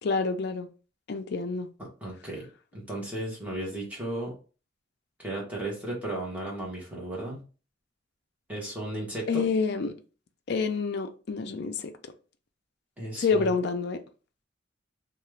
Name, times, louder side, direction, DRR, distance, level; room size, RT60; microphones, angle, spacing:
voice 1, 0.0-0.7 1.1-1.7 9.3-10.0 10.5-11.9 13.2-14.0, left 4 dB, 60° left, 0.4 m, -28 dB
voice 2, 1.8-2.5 2.7-4.4 5.2-7.5 8.5-9.5 13.0-13.5, right 1 dB, 10° right, 1.2 m, -35 dB
2.8 x 2.3 x 3.2 m
head